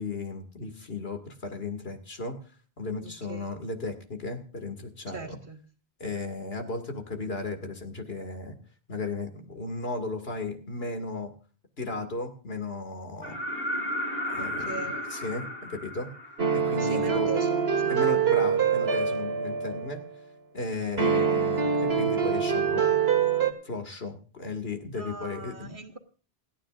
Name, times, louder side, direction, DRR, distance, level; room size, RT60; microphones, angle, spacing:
voice 1, 0.0-2.4 2.8-5.4 6.0-8.6 8.9-11.3 11.8-13.4 14.3-16.1 16.5-17.3 17.9-20.0 20.5-22.9 23.6-25.8, left 3 dB, 75° left, 2.5 m, -35 dB
voice 2, 3.0-3.5 5.1-5.6 14.4-15.0 16.8-18.0 24.9-26.0, right 4 dB, 55° right, 1.9 m, -39 dB
sound 1, 13.2-17.0 18.9-19.0, left 1 dB, 40° left, 6.7 m, -34 dB
sound 2, 16.4-20.1 21.0-23.5, right 6 dB, 80° right, 2.1 m, -25 dB
28.5 x 9.7 x 2.5 m
omnidirectional pair, 1.0 m